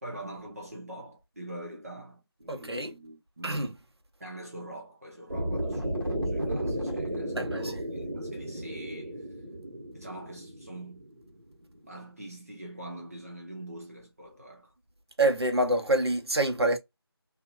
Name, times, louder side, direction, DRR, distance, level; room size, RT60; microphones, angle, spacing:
voice 1, 0.0-3.8 4.2-9.3 9.9-11.0 11.8-14.7, right 1 dB, 35° right, 0.8 m, -44 dB
voice 2, 2.5-2.9 3.4-3.7 7.3-7.8 15.2-16.8, right 1 dB, 75° right, 1.1 m, -26 dB
sound 1, 5.3-11.4, right 1 dB, 55° right, 1.4 m, -33 dB
2.8 x 2.7 x 2.4 m
figure-of-eight pair, 170°, 13 cm